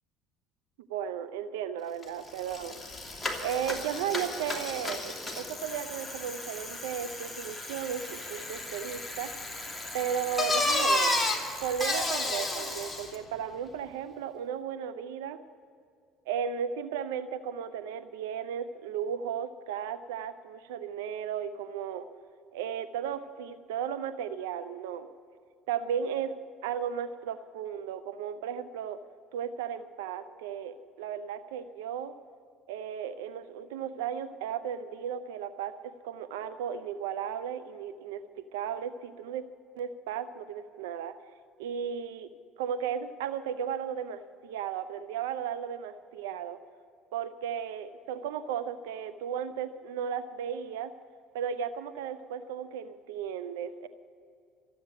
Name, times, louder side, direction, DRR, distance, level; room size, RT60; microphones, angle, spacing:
voice 1, 0.9-2.8 3.1-9.3 9.9-11.2 11.6-15.4 16.3-22.1 22.5-25.1 25.7-26.3 26.6-29.0 29.3-32.1 32.7-35.7 36.0-39.4 39.8-41.1 41.6-42.3 42.6-46.6 47.1-50.9 51.3-53.9, right 8 dB, 85° right, 13 dB, 0.6 m, -35 dB
Bicycle, 2.0-2.1 2.4-13.2, left 2 dB, 10° left, 2.7 m, -33 dB
14.5 x 8.7 x 8.9 m, 2.3 s
hypercardioid pair, 70°, 0 cm